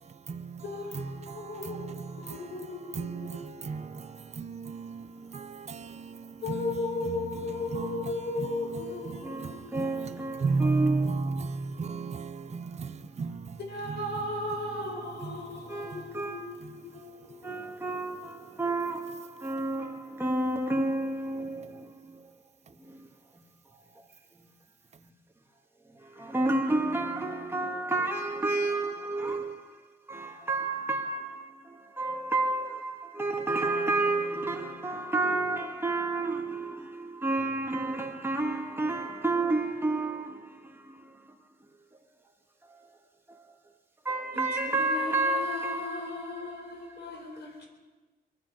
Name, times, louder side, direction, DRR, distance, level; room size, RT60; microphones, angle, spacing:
voice 1, 0.0-14.5 15.2-16.1 16.6-17.5, right 4 dB, 40° right, 0.7 m, -36 dB
voice 2, 0.6-3.5 6.4-9.9 13.7-17.5 44.3-47.7, left 2 dB, 75° left, 4.4 m, -36 dB
voice 3, 9.1-11.3 14.7-14.9 15.7-16.5 17.4-22.3 22.8-23.1 25.9-29.7 30.1-41.1 42.7-43.0 43.3-43.6 44.0-46.4 47.1-47.4, right 2 dB, 15° right, 2.1 m, -31 dB
22.5 x 12.0 x 5.1 m
cardioid pair, 100°, 18 cm